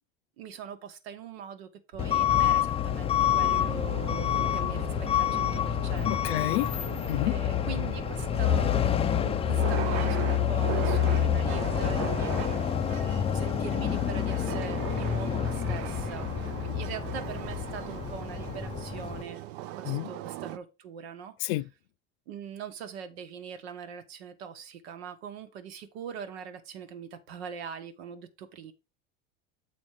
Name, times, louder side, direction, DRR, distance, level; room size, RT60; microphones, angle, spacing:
voice 1, 0.4-6.4 7.2-13.1 13.3-19.4 19.8-21.3 22.3-28.7, right 7 dB, 90° right, 1.3 m, -42 dB
Truck / Alarm, 2.0-19.2, left 10 dB, 20° left, 0.4 m, -28 dB
sound 1, 3.2-20.6, right 13 dB, 65° right, 0.6 m, -39 dB
voice 2, 6.1-6.7 7.1-7.4 19.8-20.1 21.4-21.7, left 18 dB, 75° left, 0.5 m, -29 dB
7.3 x 4.3 x 4.8 m
supercardioid pair, 120°, 31 cm